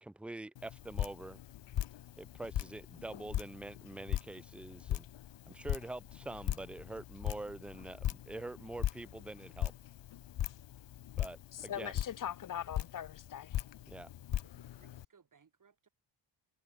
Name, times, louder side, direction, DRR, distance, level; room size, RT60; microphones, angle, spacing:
voice 1, 0.0-1.4 2.2-5.1 5.5-9.7 11.2-11.9 13.9-14.1, right 2 dB, 5° right, 0.6 m, -45 dB
Drip, 0.6-15.1, left 12 dB, 65° left, 1.3 m, -40 dB
voice 2, 11.5-13.6, left 10 dB, 45° left, 0.7 m, -41 dB
voice 3, 14.2-15.9, right 6 dB, 45° right, 5.8 m, -67 dB
cardioid pair, 95°, 46 cm